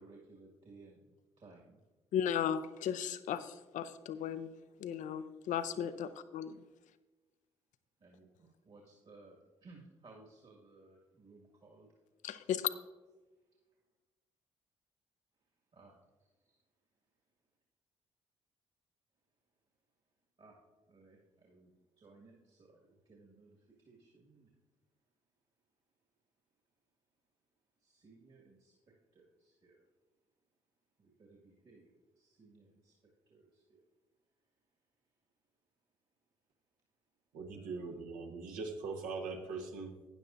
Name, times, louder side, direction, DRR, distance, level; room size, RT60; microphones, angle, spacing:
voice 1, 0.0-1.8 5.7-5.9 8.0-11.9 15.7-15.9 16.5-16.6 20.4-20.6 20.9-21.7 22.0-24.5 27.8-28.7 29.1-29.8 31.0-32.9 33.3-33.8 37.5-38.0, right 3 dB, 45° right, 2.0 m, -60 dB
voice 2, 2.1-4.5 4.8-6.5 12.2-12.7, left 9 dB, 60° left, 0.6 m, -35 dB
voice 3, 37.3-39.9, right 4 dB, 70° right, 1.2 m, -41 dB
12.0 x 9.7 x 2.6 m
hypercardioid pair, 45°, 14 cm